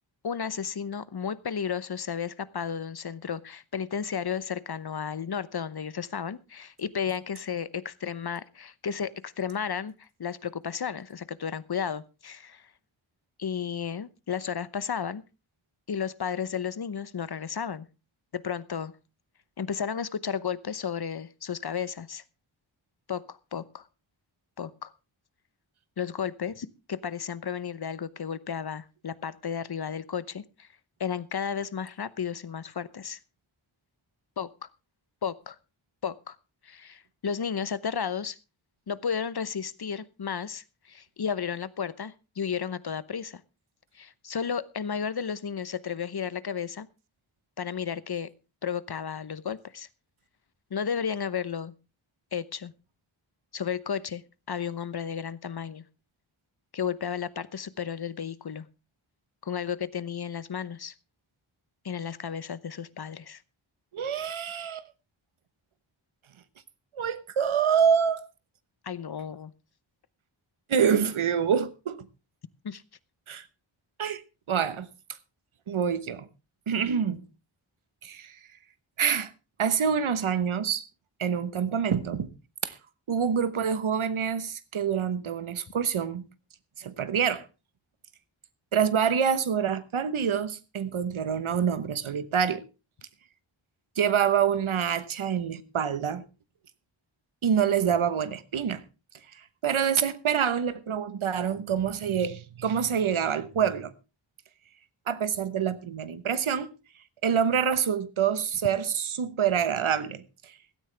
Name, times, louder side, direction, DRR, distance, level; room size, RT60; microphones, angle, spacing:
voice 1, 0.2-12.7 13.4-15.2 15.9-17.9 18.3-18.9 19.6-22.2 23.1-23.8 24.6-24.9 26.0-30.7 31.0-33.2 34.4-34.5 35.2-35.6 36.0-36.4 36.6-38.4 38.9-43.4 43.9-46.9 47.6-48.3 48.6-49.9 50.7-51.7 52.3-52.7 53.5-54.2 54.5-55.8 56.7-58.7 59.4-60.9 61.8-63.4 68.8-69.5 72.6-72.8, left 7 dB, 55° left, 0.9 m, -33 dB
voice 2, 63.9-64.8 66.9-68.2 70.7-72.0 73.3-73.4 74.0-74.2 74.5-74.9 75.7-76.3 76.7-77.2 78.0-78.4 79.0-79.3 79.6-80.8 81.2-82.3 82.6-82.8 83.1-86.2 86.8-87.4 88.7-92.6 94.0-96.2 97.4-98.8 99.6-103.9 105.1-106.7 107.2-110.5, right 7 dB, 90° right, 1.2 m, -26 dB
16.5 x 13.0 x 3.4 m
wide cardioid pair, 75°, 47 cm